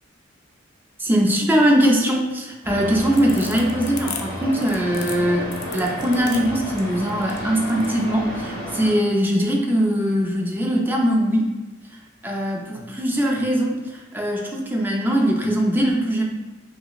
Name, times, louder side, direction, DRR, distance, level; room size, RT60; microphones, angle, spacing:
voice 1, 1.0-11.5 12.2-16.2, equal, 10° right, -1 dB, 0.4 m, -21 dB
sound 1, 2.6-8.9, equal, 10° left, 1.0 m, -31 dB
sound 2, 2.9-7.9, left 7 dB, 85° left, 0.4 m, -36 dB
5.1 x 2.0 x 2.3 m, 1.1 s
head